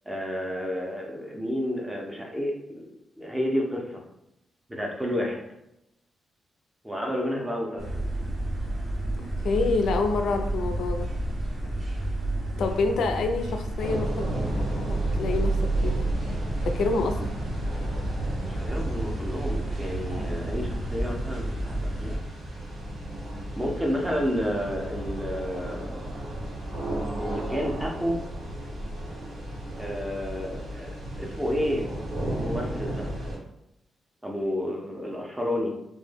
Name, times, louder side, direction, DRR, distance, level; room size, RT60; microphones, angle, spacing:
voice 1, 0.1-4.0 4.7-5.4 6.8-8.0 18.4-22.2 23.6-26.1 27.2-28.2 29.8-31.9 32.3-33.1 34.2-35.7, equal, 10° right, 0 dB, 0.4 m, -31 dB
sound 1, 7.8-22.2, right 2 dB, 55° right, 0.7 m, -30 dB
voice 2, 9.4-11.1 12.6-14.3 14.5-15.6 15.8-16.1 16.7-17.1, left 3 dB, 80° left, 5 dB, 0.3 m, -27 dB
sound 2, 13.8-33.4, right 1 dB, 90° right, 1.0 m, -34 dB
2.1 x 2.1 x 3.2 m, 0.85 s
wide cardioid pair, 165°, 0 cm